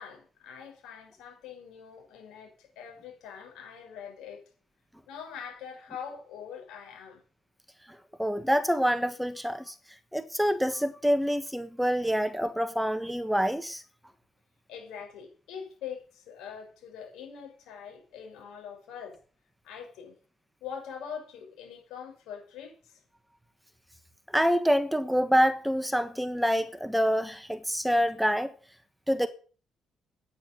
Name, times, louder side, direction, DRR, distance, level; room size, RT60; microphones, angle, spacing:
voice 1, 0.0-4.4 5.1-7.2 14.7-19.2 19.6-20.1 20.6-23.0, left 7 dB, 85° left, 6.0 m, -43 dB
voice 2, 8.2-9.7 10.1-13.8 24.3-28.5 29.1-29.3, equal, ahead, 1.2 m, -26 dB
10.0 x 9.4 x 9.3 m
cardioid pair, 90°, 0 cm